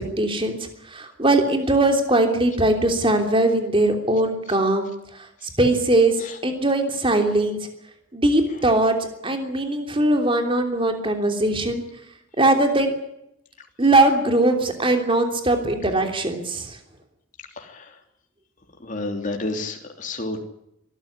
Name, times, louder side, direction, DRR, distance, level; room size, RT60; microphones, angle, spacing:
voice 1, 0.2-0.6 0.9-4.9 5.6-6.1 6.4-7.6 8.1-9.0 9.2-11.8 12.4-12.9 13.8-16.6, right 2 dB, 25° right, 5 dB, 3.2 m, -20 dB
voice 2, 17.6-17.9 18.8-20.4, left 2 dB, 40° left, 3 dB, 3.2 m, -30 dB
23.5 x 14.0 x 10.0 m, 0.80 s
head